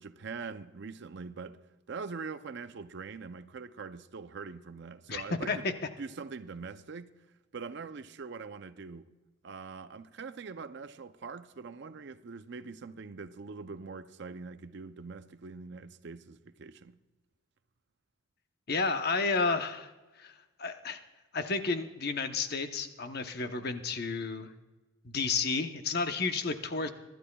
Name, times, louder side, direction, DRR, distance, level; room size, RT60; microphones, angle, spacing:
voice 1, 0.0-1.6 1.9-5.6 6.0-7.1 7.5-9.1 9.4-17.0, right 4 dB, 55° right, 0.5 m, -43 dB
voice 2, 5.1-5.7 18.7-19.9 20.2-20.3 20.6-21.0 21.3-24.5 25.0-26.9, left 4 dB, 50° left, 0.8 m, -31 dB
24.0 x 12.0 x 2.3 m
head